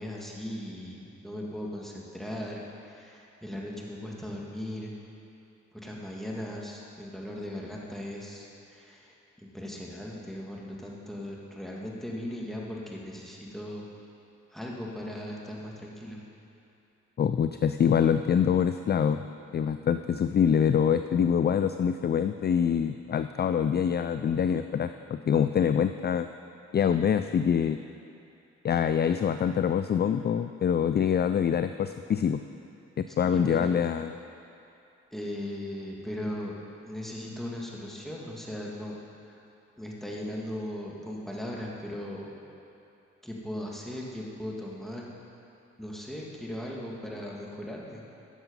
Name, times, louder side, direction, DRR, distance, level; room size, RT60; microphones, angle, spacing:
voice 1, 0.0-4.9 5.7-13.9 14.5-16.2 33.1-33.7 35.1-36.6 36.9-39.0 39.3-39.4 39.8-42.3 43.2-45.1 45.8-48.0, left 1 dB, ahead, -3 dB, 2.3 m, -38 dB
voice 2, 17.2-19.2 19.5-26.3 26.7-27.8 28.6-32.4 33.0-34.1, left 8 dB, 35° left, 10 dB, 0.4 m, -25 dB
11.0 x 7.2 x 5.5 m, 2.7 s
supercardioid pair, 40°, 31 cm